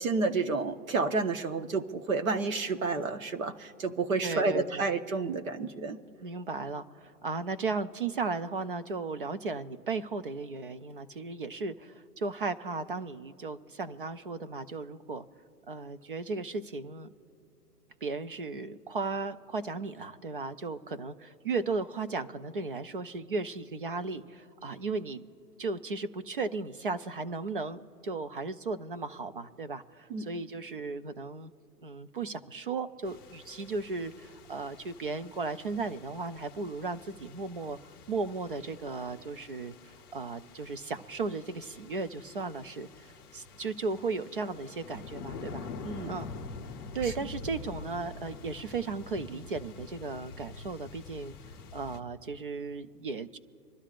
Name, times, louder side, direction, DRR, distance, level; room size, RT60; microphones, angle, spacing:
voice 1, 0.0-6.0 30.1-30.2 45.8-46.1 47.0-47.1, right 3 dB, 55° right, 7 dB, 1.2 m, -30 dB
voice 2, 4.2-4.9 6.2-15.3 15.7-17.1 18.0-25.2 25.6-31.5 31.8-37.8 38.1-45.7 46.1-46.3 46.9-51.3 51.7-53.4, right 4 dB, 35° right, 11 dB, 0.5 m, -35 dB
sound 1, 33.0-52.0, left 4 dB, 15° left, 0.7 m, -46 dB
25.5 x 12.5 x 2.5 m, 2.8 s
hypercardioid pair, 150°, 48 cm